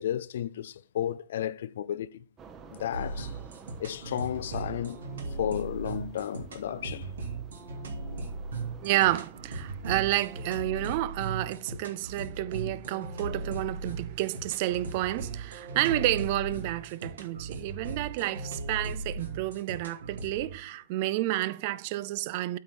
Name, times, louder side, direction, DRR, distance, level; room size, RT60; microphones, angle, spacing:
voice 1, 0.0-2.2 2.7-3.3 3.8-5.0 5.4-7.1 12.6-12.8, left 10 dB, 70° left, 0.4 m, -33 dB
sound 1, 2.4-10.5, right 5 dB, 25° right, 1.0 m, -51 dB
sound 2, 2.9-20.5, right 3 dB, 80° right, 2.0 m, -38 dB
voice 2, 8.8-22.6, right 15 dB, 50° right, 0.5 m, -30 dB
8.5 x 3.6 x 6.0 m
hypercardioid pair, 125°, 0 cm